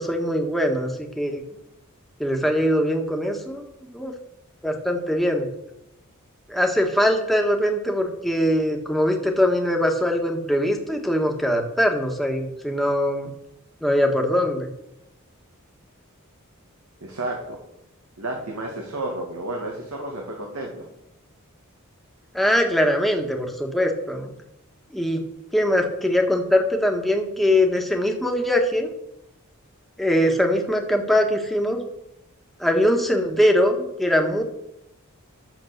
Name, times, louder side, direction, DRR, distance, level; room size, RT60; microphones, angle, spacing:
voice 1, 0.0-1.4 2.2-3.6 3.9-4.1 4.6-5.5 6.5-13.3 13.8-14.7 22.3-24.3 24.9-25.2 25.5-28.9 30.0-31.8 32.6-34.4, equal, ahead, 2 dB, 1.6 m, -22 dB
voice 2, 17.0-17.6 18.2-20.8, right 2 dB, 85° right, 1 dB, 2.2 m, -31 dB
12.0 x 7.4 x 6.7 m, 0.85 s
head